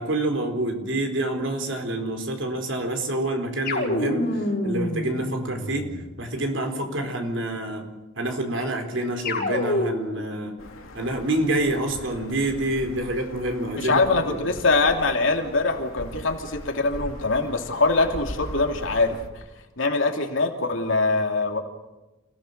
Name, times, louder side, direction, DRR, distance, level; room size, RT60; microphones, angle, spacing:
voice 1, 0.0-5.9 6.2-7.9 8.2-10.5 10.9-14.0 14.3-14.5, right 1 dB, 60° right, 4 dB, 4.3 m, -27 dB
sound 1, 3.7-6.1 9.2-10.3, left 1 dB, 45° left, 5.9 m, -27 dB
sound 2, 10.6-19.3, left 1 dB, 85° left, 3.1 m, -40 dB
voice 2, 13.8-19.2 19.8-21.6, left 3 dB, 65° left, 4 dB, 2.9 m, -23 dB
29.0 x 17.0 x 6.7 m, 1.1 s
head